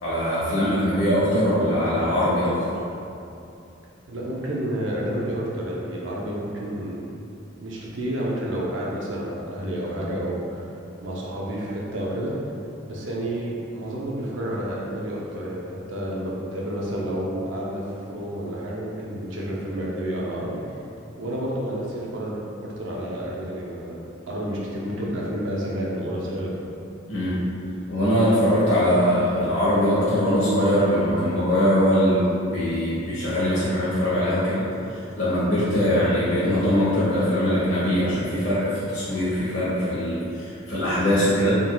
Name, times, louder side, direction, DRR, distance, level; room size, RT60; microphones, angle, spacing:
voice 1, 0.0-2.5 27.1-27.4 27.9-34.6 34.9-41.6, equal, 80° left, -11 dB, 1.1 m, -22 dB
voice 2, 4.1-7.0 7.6-10.6 11.0-12.3 12.9-20.6 21.1-24.0 24.3-26.5, right 1 dB, 65° right, -4 dB, 0.7 m, -30 dB
4.1 x 3.8 x 2.3 m, 2.7 s
head